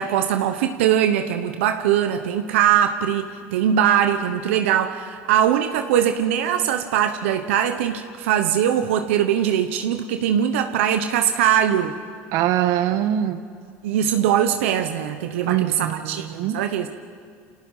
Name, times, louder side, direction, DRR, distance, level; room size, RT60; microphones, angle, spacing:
voice 1, 0.0-12.0 13.8-16.9, right 9 dB, 90° right, 7 dB, 1.2 m, -21 dB
voice 2, 12.3-13.4 15.4-16.6, right 11 dB, 70° right, 10 dB, 1.5 m, -23 dB
28.5 x 26.5 x 5.7 m, 2.2 s
supercardioid pair, 100°, 7 cm